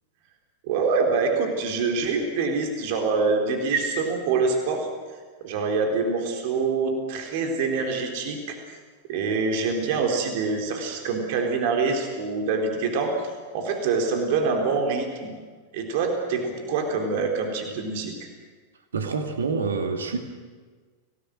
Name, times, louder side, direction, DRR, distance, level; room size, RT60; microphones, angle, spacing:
voice 1, 0.6-4.9 5.4-8.6 9.1-15.4 15.7-18.1, right 4 dB, 50° right, 3 dB, 3.7 m, -25 dB
voice 2, 18.9-20.2, right 4 dB, 70° right, 5 dB, 2.6 m, -27 dB
29.5 x 18.5 x 6.4 m, 1.5 s
figure-of-eight pair, 90°, 0 cm